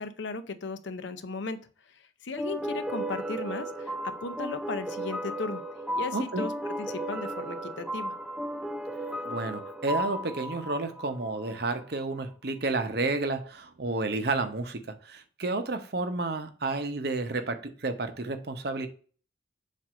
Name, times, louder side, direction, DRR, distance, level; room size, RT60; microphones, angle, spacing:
voice 1, 0.0-1.6 1.9-5.6 6.0-6.5 6.9-8.1, left 4 dB, 70° left, 0.6 m, -36 dB
sound 1, 2.4-11.6, equal, 5° right, 0.3 m, -35 dB
voice 2, 6.1-6.4 9.2-18.9, right 3 dB, 55° right, 0.8 m, -31 dB
7.4 x 2.6 x 5.0 m
head